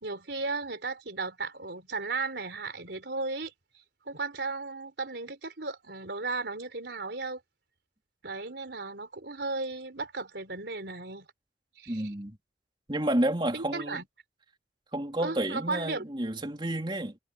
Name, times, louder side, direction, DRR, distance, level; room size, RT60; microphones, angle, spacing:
voice 1, 0.0-3.5 4.1-7.4 8.2-11.3 11.8-12.1 13.5-14.0 15.2-16.0, right 3 dB, 75° right, 3.6 m, -35 dB
voice 2, 11.9-12.4 12.9-14.0 14.9-17.2, right 1 dB, 25° right, 3.3 m, -30 dB
head